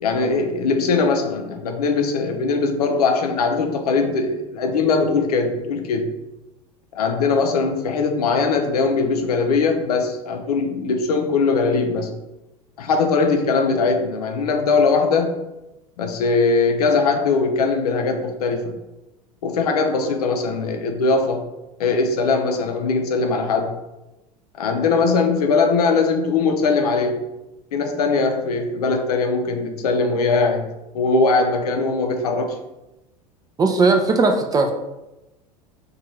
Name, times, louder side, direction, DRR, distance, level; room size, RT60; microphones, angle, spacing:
voice 1, 0.0-6.1 6.9-12.2 12.8-15.4 16.0-18.8 19.4-21.4 21.8-23.7 24.6-27.2 27.7-30.7 30.9-32.6, left 4 dB, 80° left, 5 dB, 0.4 m, -20 dB
voice 2, 33.6-34.7, right 3 dB, 20° right, 4 dB, 0.3 m, -17 dB
2.6 x 2.3 x 3.0 m, 0.97 s
hypercardioid pair, 80°, 19 cm